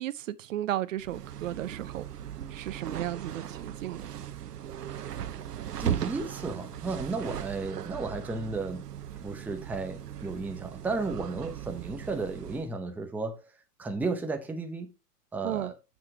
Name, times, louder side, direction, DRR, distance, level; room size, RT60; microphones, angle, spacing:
voice 1, 0.0-2.1 2.5-4.1 15.4-15.7, right 13 dB, 55° right, 0.7 m, -34 dB
sound 1, 1.0-12.7, right 10 dB, 80° right, 1.0 m, -38 dB
voice 2, 5.8-8.9 9.2-13.4 13.8-14.9 15.3-15.7, right 3 dB, 5° right, 0.8 m, -33 dB
9.5 x 7.2 x 2.9 m
hypercardioid pair, 135°, 47 cm